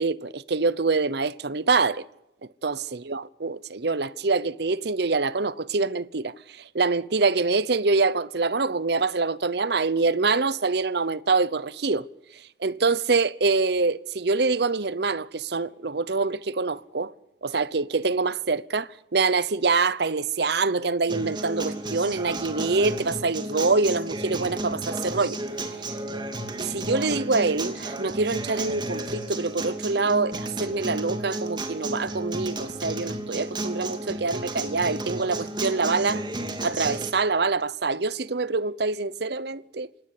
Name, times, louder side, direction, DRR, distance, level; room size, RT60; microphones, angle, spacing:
voice 1, 0.0-2.0 2.6-6.3 6.7-12.1 12.6-17.1 17.4-25.4 26.6-36.2 36.6-39.9, right 4 dB, 60° right, 0.8 m, -25 dB
Acoustic guitar, 21.1-37.1, right 1 dB, 25° right, 2.8 m, -33 dB
27.0 x 18.0 x 8.5 m
head